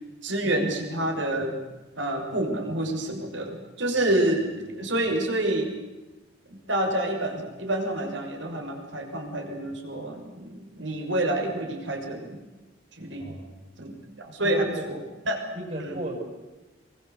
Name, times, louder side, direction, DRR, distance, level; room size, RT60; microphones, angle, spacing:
voice 1, 0.2-1.6 2.0-5.7 6.5-12.4 13.0-13.3 13.8-15.0 15.2-15.4 15.8-16.0, right 1 dB, 75° right, 3 dB, 6.5 m, -28 dB
voice 2, 13.2-13.7 14.4-14.9 15.5-16.2, right 1 dB, 40° right, 2 dB, 7.1 m, -36 dB
26.5 x 23.5 x 8.2 m, 1.1 s
head